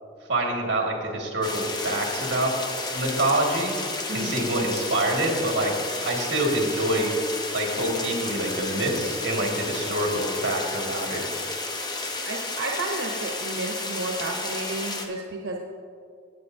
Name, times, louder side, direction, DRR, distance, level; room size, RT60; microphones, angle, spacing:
voice 1, 0.3-2.5 2.9-3.7 4.1-5.7 6.0-7.1 7.5-11.2, right 1 dB, 60° right, 0 dB, 2.0 m, -26 dB
sound 1, 1.4-15.1, left 3 dB, 20° left, 0.7 m, -32 dB
voice 2, 4.1-4.4 12.3-15.6, right 2 dB, 85° right, 0 dB, 0.9 m, -32 dB
18.5 x 7.8 x 2.7 m, 2.3 s
head